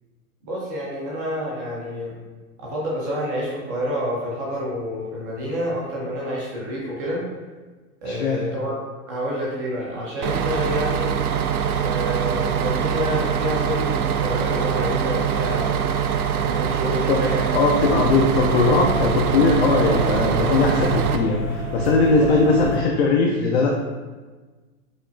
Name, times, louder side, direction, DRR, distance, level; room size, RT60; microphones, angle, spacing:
voice 1, 0.4-2.1 2.6-7.2 8.0-8.8 9.1-11.1 11.8-15.8 16.3-17.4 19.8-19.9 20.5-20.6 22.0-22.3, equal, 15° right, -5 dB, 0.4 m, -28 dB
voice 2, 8.1-8.4 17.1-17.2 17.5-23.7, left 3 dB, 50° left, 0 dB, 0.5 m, -20 dB
Bus, 10.2-21.2, right 8 dB, 85° right, 0.5 m, -23 dB
sound 1, 17.8-22.8, right 1 dB, 85° left, 1.4 m, -29 dB
5.1 x 2.3 x 2.5 m, 1.3 s
hypercardioid pair, 140°, 44 cm